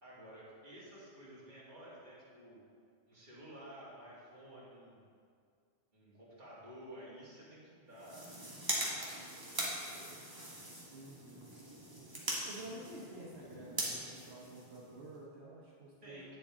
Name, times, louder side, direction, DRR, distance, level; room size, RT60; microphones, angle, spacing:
voice 1, 0.0-2.6 3.1-5.0 5.9-8.3 8.9-10.1 16.0-16.4, right 1 dB, 45° right, -8 dB, 2.3 m, -53 dB
sound 1, 7.9-15.2, right 1 dB, 20° right, 1.4 m, -41 dB
voice 2, 10.9-11.5 12.4-16.4, right 1 dB, 80° right, -5 dB, 1.4 m, -50 dB
9.1 x 6.8 x 3.7 m, 2.2 s
omnidirectional pair, 1.1 m